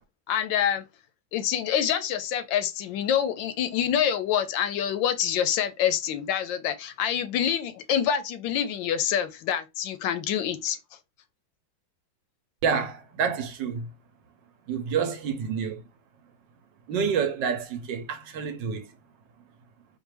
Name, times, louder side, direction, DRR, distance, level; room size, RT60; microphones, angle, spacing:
voice 1, 0.3-0.8 1.3-10.8, left 9 dB, 75° left, 1.2 m, -26 dB
voice 2, 12.6-13.9 14.7-15.8 16.9-18.9, right 6 dB, 70° right, 1.3 m, -28 dB
4.4 x 2.5 x 3.2 m
omnidirectional pair, 2.2 m